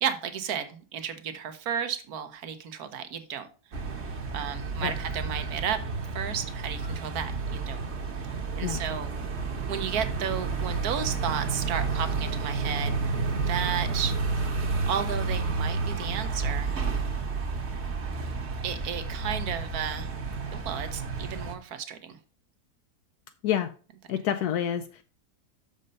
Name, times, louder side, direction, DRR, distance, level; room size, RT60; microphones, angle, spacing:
voice 1, 0.0-3.5 4.3-5.8 6.1-7.8 8.6-9.2 9.7-12.9 13.4-14.1 14.9-16.7 18.6-20.1 20.5-22.2, right 8 dB, 70° right, 1.4 m, -33 dB
sound 1, 3.7-21.5, right 4 dB, 45° right, 1.3 m, -31 dB
voice 2, 24.1-25.0, left 10 dB, 80° left, 1.1 m, -28 dB
6.6 x 5.4 x 5.3 m
omnidirectional pair, 1.7 m